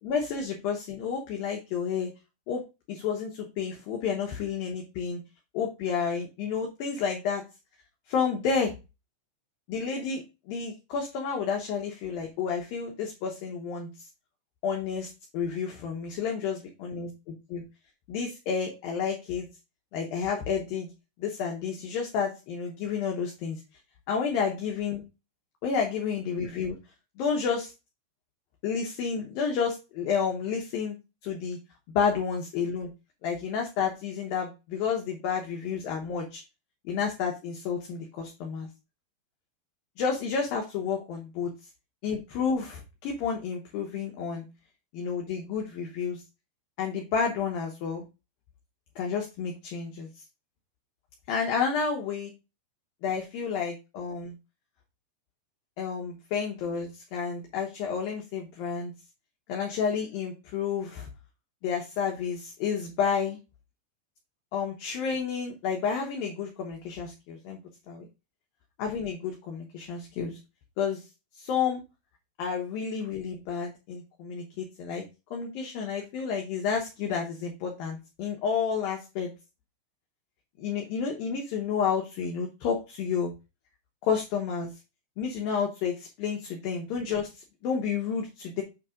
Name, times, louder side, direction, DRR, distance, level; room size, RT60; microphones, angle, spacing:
voice 1, 0.0-2.1 2.5-2.6 2.9-5.2 5.5-7.4 8.1-8.7 9.7-14.1 14.6-17.6 18.1-19.5 19.9-20.9 21.2-23.6 24.1-25.0 25.6-26.8 27.2-27.7 28.6-31.0 31.2-31.6 31.9-32.9 33.2-36.4 36.8-38.7 40.0-41.5 42.0-44.5 44.9-46.2 46.8-48.0 49.0-50.1 51.3-52.3 53.0-54.3 55.8-58.9 59.5-61.1 61.6-63.4 64.5-67.6 67.9-68.1 68.8-70.4 70.8-71.0 71.3-71.8 72.4-75.0 75.3-79.3 80.6-83.3 84.0-84.7 85.2-88.6, left 6 dB, 70° left, 1 dB, 2.3 m, -30 dB
7.9 x 3.3 x 4.9 m, 0.28 s
omnidirectional pair, 5.1 m